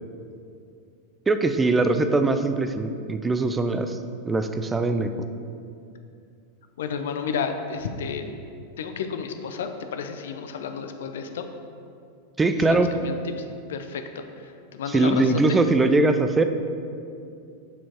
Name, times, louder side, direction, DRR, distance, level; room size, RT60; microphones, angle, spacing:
voice 1, 1.3-4.0 4.2-5.1 12.4-12.9 14.9-16.4, right 2 dB, 15° right, 8 dB, 0.4 m, -21 dB
voice 2, 6.8-8.2 8.8-11.5 12.7-15.4, left 6 dB, 60° left, 7 dB, 0.5 m, -32 dB
7.1 x 4.4 x 4.4 m, 2.5 s
figure-of-eight pair, 90°, 0 cm